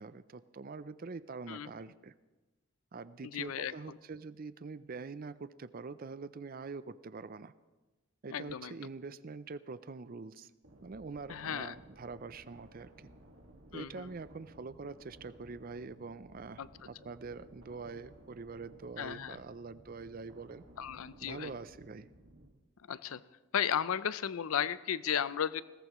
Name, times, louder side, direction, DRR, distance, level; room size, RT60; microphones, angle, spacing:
voice 1, 0.0-2.1 2.9-7.5 8.2-10.5 10.8-13.1 13.7-20.6 21.2-22.1, right 4 dB, 40° right, 15 dB, 0.5 m, -45 dB
voice 2, 3.3-4.0 8.3-8.7 11.3-11.8 13.7-14.1 16.6-16.7 19.0-19.4 20.8-21.5 22.9-23.2 23.5-25.6, left 8 dB, 80° left, 16 dB, 0.5 m, -35 dB
sound 1, 10.6-22.5, right 1 dB, 65° right, 1.8 m, -58 dB
21.0 x 17.5 x 3.1 m, 1.2 s
head